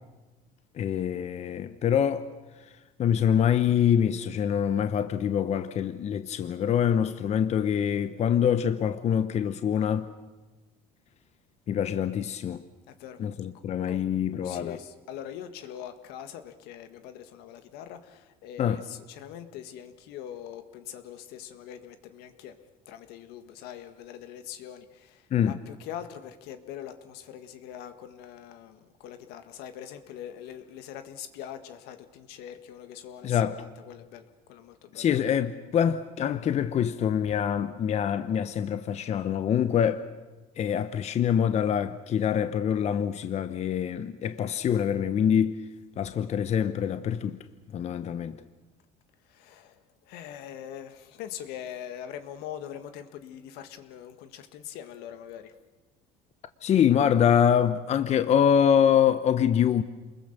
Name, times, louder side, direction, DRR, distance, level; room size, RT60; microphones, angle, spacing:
voice 1, 0.7-2.3 3.0-10.1 11.7-12.6 13.2-14.8 18.6-18.8 25.3-25.6 33.2-33.5 34.9-40.0 40.6-45.6 46.0-47.4 47.7-48.4 56.6-59.8, left 8 dB, 40° left, 0.9 m, -25 dB
voice 2, 12.9-13.2 13.9-14.0 14.4-22.6 22.9-35.1 49.3-55.5, left 10 dB, 75° left, 1.7 m, -42 dB
28.0 x 21.5 x 6.8 m
cardioid pair, 115°, 17 cm